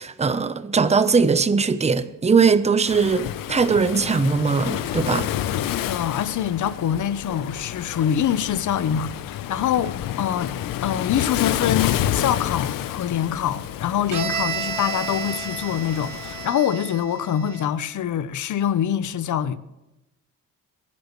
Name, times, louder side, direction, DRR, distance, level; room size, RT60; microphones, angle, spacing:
voice 1, 0.0-5.3, right 5 dB, 20° right, 0.8 m, -20 dB
Waves surf, 2.9-16.5, left 12 dB, 85° left, 0.8 m, -29 dB
voice 2, 5.7-19.6, left 9 dB, 60° left, 0.9 m, -25 dB
Bowed string instrument, 14.1-17.9, right 7 dB, 65° right, 1.8 m, -32 dB
23.0 x 11.0 x 3.2 m
cardioid pair, 95°, 33 cm